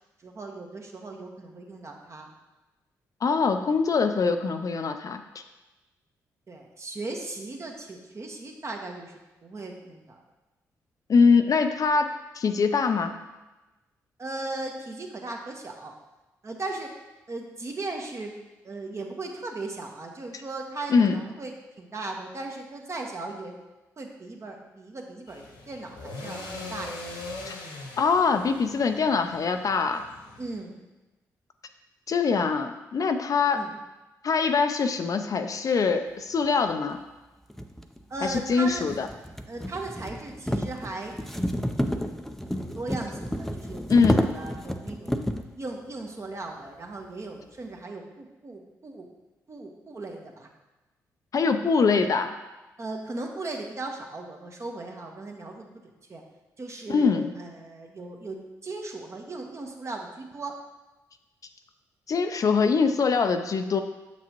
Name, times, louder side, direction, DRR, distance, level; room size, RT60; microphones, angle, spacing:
voice 1, 0.2-2.3 6.5-9.1 9.4-10.2 14.2-15.9 16.4-16.9 17.3-18.3 18.6-23.6 24.0-27.3 30.4-30.7 33.5-33.7 38.1-38.9 39.5-45.2 45.6-49.1 49.5-50.5 52.8-55.8 56.1-56.2 56.6-60.5, right 2 dB, 40° right, 2 dB, 1.2 m, -37 dB
voice 2, 3.2-5.2 11.1-12.1 12.4-13.1 20.9-21.2 27.5-27.6 28.0-30.0 32.1-33.6 34.2-37.0 38.2-39.1 43.9-44.2 51.3-52.3 56.9-57.3 62.1-63.8, left 5 dB, 50° left, 7 dB, 0.5 m, -23 dB
sound 1, 25.3-30.6, left 2 dB, 75° left, 1.2 m, -41 dB
sound 2, 36.7-36.8 37.5-45.5, equal, 5° left, 0.5 m, -30 dB
6.9 x 6.0 x 3.0 m, 1.1 s
hypercardioid pair, 45°, 8 cm